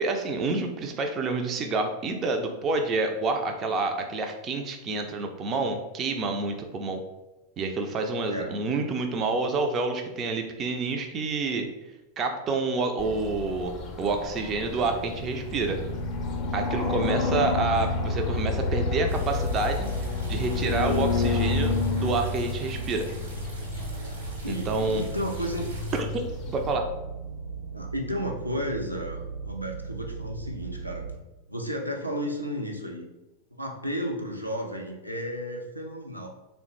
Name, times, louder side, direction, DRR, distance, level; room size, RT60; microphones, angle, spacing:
voice 1, 0.0-7.0 7.6-11.7 12.2-15.8 16.5-19.9 20.3-23.1 24.5-25.0 25.9-26.1 26.5-26.9, right 3 dB, 30° right, 4 dB, 0.4 m, -28 dB
sound 1, 13.0-26.8, left 4 dB, 30° left, 0.5 m, -30 dB
sound 2, 15.5-31.1, right 4 dB, 90° left, 0.4 m, -38 dB
sound 3, 19.1-26.0, right 2 dB, 65° right, 1.0 m, -46 dB
voice 2, 24.4-25.7 27.7-31.0 31.5-33.0 33.6-36.3, equal, 90° right, 0 dB, 0.5 m, -33 dB
3.5 x 2.1 x 3.0 m, 1.0 s
figure-of-eight pair, 90°, 0 cm